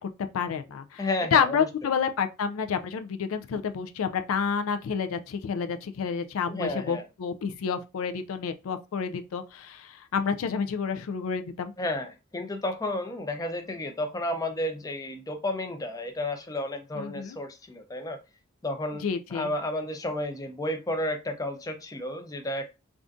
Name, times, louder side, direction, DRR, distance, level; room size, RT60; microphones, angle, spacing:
voice 1, 0.3-11.7 17.0-17.4 19.0-19.5, left 6 dB, 90° left, 0.4 m, -29 dB
voice 2, 1.0-1.6 6.5-7.1 11.8-18.2 18.6-19.0 19.3-22.7, left 1 dB, 15° left, 0.4 m, -32 dB
3.5 x 2.5 x 2.5 m
head